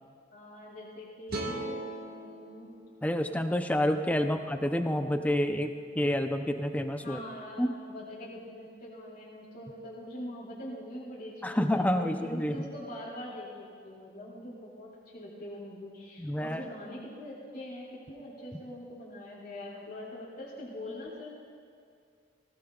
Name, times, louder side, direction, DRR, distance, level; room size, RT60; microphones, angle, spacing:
voice 1, 0.3-2.7 4.2-4.4 7.0-21.3, left 1 dB, 55° left, -6 dB, 2.5 m, -43 dB
sound 1, 1.3-4.5, right 2 dB, 55° right, 1.7 m, -40 dB
voice 2, 3.0-7.2 7.6-7.7 11.4-12.6 16.2-16.6, left 1 dB, 10° left, 6 dB, 0.6 m, -28 dB
19.0 x 16.0 x 2.4 m, 2.3 s
head